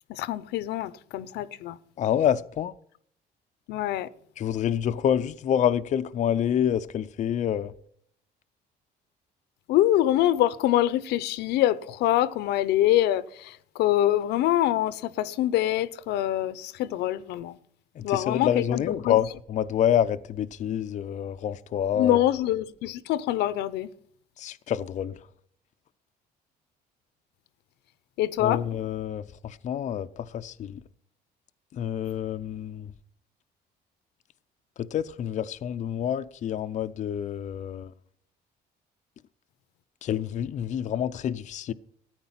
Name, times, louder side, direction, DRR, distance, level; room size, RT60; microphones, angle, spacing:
voice 1, 0.1-1.8 3.7-4.1 9.7-17.6 18.0-19.2 22.0-23.9 28.2-28.6, left 13 dB, 85° left, 0.7 m, -25 dB
voice 2, 2.0-2.7 4.4-7.7 18.0-22.2 24.4-25.2 28.4-30.8 31.7-32.9 34.8-37.9 40.0-41.7, left 9 dB, 45° left, 0.5 m, -27 dB
13.5 x 9.4 x 5.7 m
cardioid pair, 110°, 17 cm